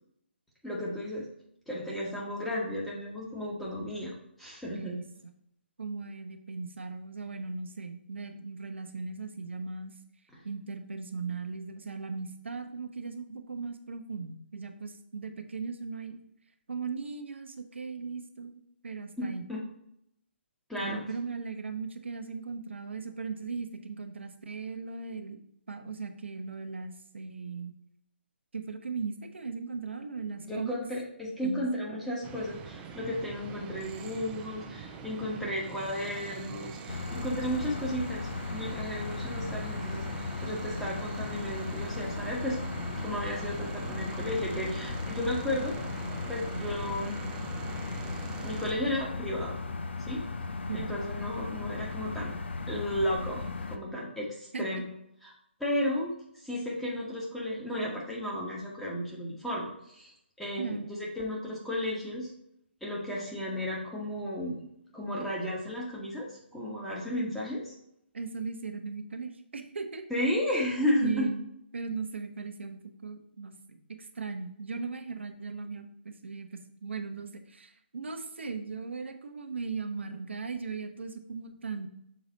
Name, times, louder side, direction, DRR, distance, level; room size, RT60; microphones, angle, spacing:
voice 1, 0.6-1.3 1.7-5.0 19.2-19.6 20.7-21.0 30.4-42.6 43.0-45.8 46.2-47.2 48.4-49.6 50.0-50.2 50.7-52.3 52.7-53.4 53.7-54.8 55.2-55.3 55.6-56.1 56.4-60.1 60.4-62.3 62.8-64.6 64.9-66.2 66.5-67.7 70.1-71.3, left 1 dB, ahead, -5 dB, 1.3 m, -33 dB
voice 2, 5.8-9.9 10.4-16.2 16.7-19.4 20.8-25.4 25.7-27.7 28.5-30.8 31.4-31.6 50.7-50.9 54.5-54.7 60.6-61.0 68.1-70.1 71.0-71.5 71.7-81.9, right 4 dB, 75° right, 7 dB, 0.9 m, -38 dB
sound 1, 32.2-48.7, right 5 dB, 15° right, 0.5 m, -43 dB
sound 2, 36.9-53.8, left 3 dB, 70° left, 0.6 m, -37 dB
6.5 x 4.0 x 4.0 m, 0.75 s
figure-of-eight pair, 145°, 6 cm